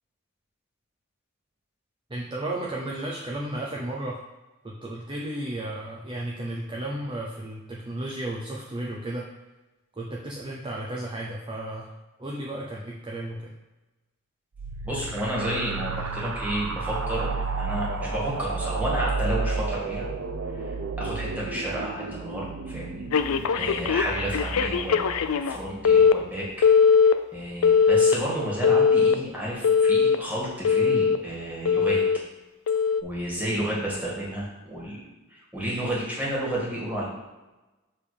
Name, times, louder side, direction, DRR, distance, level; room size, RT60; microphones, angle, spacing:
voice 1, 2.1-4.2 4.6-9.3 10.0-11.9 12.2-13.5, right 1 dB, 25° right, -3 dB, 0.7 m, -33 dB
sound 1, 14.6-25.9, right 4 dB, 75° right, 0.7 m, -32 dB
voice 2, 14.8-20.1 20.7-26.5 27.0-32.0 33.0-35.0 35.3-37.1, equal, 10° right, -5 dB, 2.1 m, -31 dB
Telephone, 23.1-25.6 25.8-26.1 26.6-27.1 27.6-28.1 28.6-29.1 29.6-30.1 30.6-31.2 31.6-32.2 32.7-33.0, left 6 dB, 75° left, 0.4 m, -20 dB
6.9 x 3.6 x 5.1 m, 1.1 s
head